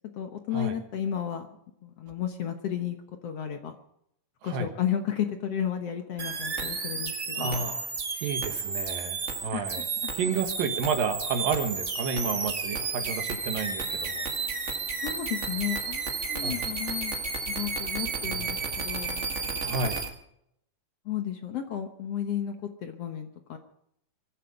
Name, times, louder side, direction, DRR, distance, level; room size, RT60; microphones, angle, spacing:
voice 1, 0.1-1.5 1.8-3.0 3.2-3.8 4.4-7.6 9.5-10.1 15.0-17.2 17.5-19.2 21.1-23.6, left 9 dB, 60° left, 6 dB, 1.8 m, -33 dB
sound 1, 6.2-20.1, right 4 dB, 35° right, 1.1 m, -32 dB
voice 2, 7.4-7.9 8.2-9.9 10.1-14.2 16.4-16.6 18.2-18.7 19.6-20.0, right 5 dB, 85° right, 6 dB, 3.3 m, -31 dB
23.5 x 12.0 x 5.2 m, 0.76 s
omnidirectional pair, 3.9 m